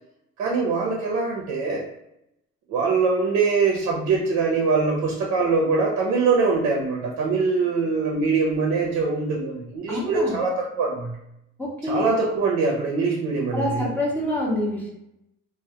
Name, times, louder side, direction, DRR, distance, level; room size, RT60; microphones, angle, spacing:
voice 1, 0.4-1.9 2.7-11.2 11.8-13.8, right 4 dB, 60° right, -2 dB, 0.5 m, -23 dB
voice 2, 9.9-10.4 11.6-12.1 13.5-14.9, left 1 dB, 5° left, -3 dB, 0.5 m, -26 dB
2.2 x 2.1 x 2.7 m, 0.84 s
cardioid pair, 135°, 30 cm